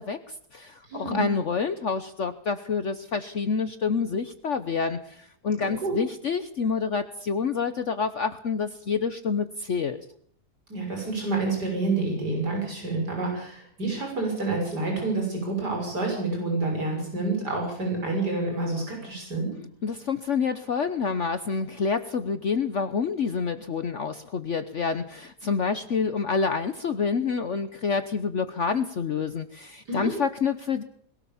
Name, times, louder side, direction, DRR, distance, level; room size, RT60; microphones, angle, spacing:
voice 1, 0.0-10.0 19.8-30.8, left 5 dB, 50° left, 10 dB, 1.2 m, -28 dB
voice 2, 0.9-1.3 5.6-5.9 10.7-19.5 29.9-30.1, right 3 dB, 85° right, 1 dB, 7.2 m, -28 dB
21.5 x 17.5 x 7.2 m, 0.63 s
omnidirectional pair, 1.7 m